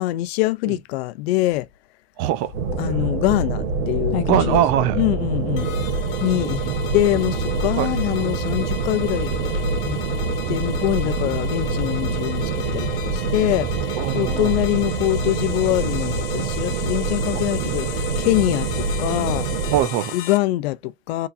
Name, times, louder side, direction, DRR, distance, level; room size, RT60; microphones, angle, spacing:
voice 1, 0.0-1.7 2.8-4.6 5.0-5.7 6.2-6.6 6.9-9.3 9.8-10.0 10.5-19.5 20.1-21.3, left 17 dB, 80° left, 0.6 m, -24 dB
voice 2, 2.2-2.5 4.3-5.0 7.8-7.9 14.0-14.5 19.7-20.1, right 11 dB, 45° right, 0.8 m, -21 dB
sound 1, 2.3-16.9, left 11 dB, 40° left, 1.0 m, -39 dB
sound 2, 2.5-19.8, right 4 dB, 70° right, 1.8 m, -25 dB
sound 3, 5.6-20.4, left 8 dB, 60° left, 1.2 m, -36 dB
4.6 x 4.0 x 2.5 m
supercardioid pair, 170°, 31 cm